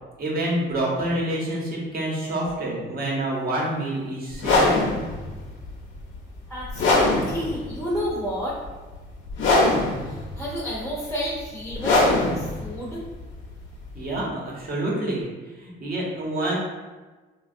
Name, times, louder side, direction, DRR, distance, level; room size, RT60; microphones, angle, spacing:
voice 1, 0.2-4.8 13.9-15.3 15.6-16.6, right 1 dB, 50° right, -4 dB, 1.0 m, -27 dB
sound 1, 4.3-14.2, left 2 dB, 75° left, 0.7 m, -23 dB
voice 2, 6.5-8.6 10.0-13.1, equal, 5° left, -6 dB, 0.6 m, -31 dB
3.2 x 2.3 x 2.6 m, 1.3 s
cardioid pair, 90°, 20 cm